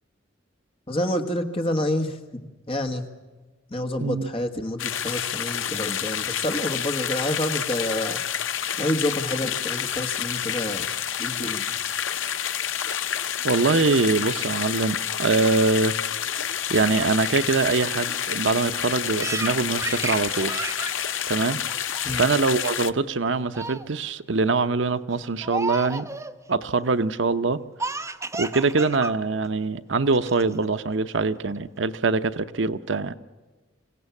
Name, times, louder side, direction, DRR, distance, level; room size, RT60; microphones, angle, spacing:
voice 1, 0.9-3.0 3.7-8.2 8.8-10.9 11.2-11.6 22.0-22.3, left 1 dB, 30° left, 5 dB, 1.6 m, -28 dB
sound 1, 4.8-22.9, left 9 dB, 75° left, 0.8 m, -29 dB
voice 2, 13.4-16.0 16.7-20.6 21.3-21.6 22.1-26.1 26.5-27.6 28.3-33.2, right 3 dB, 65° right, 11 dB, 0.8 m, -23 dB
Laughter, 19.2-22.2 22.6-22.9 23.2-23.9 24.3-24.7 25.4-26.4 27.8-29.1 29.4-29.5 30.1-30.6, right 2 dB, 15° right, 0.8 m, -33 dB
25.5 x 17.0 x 7.2 m, 1.3 s
head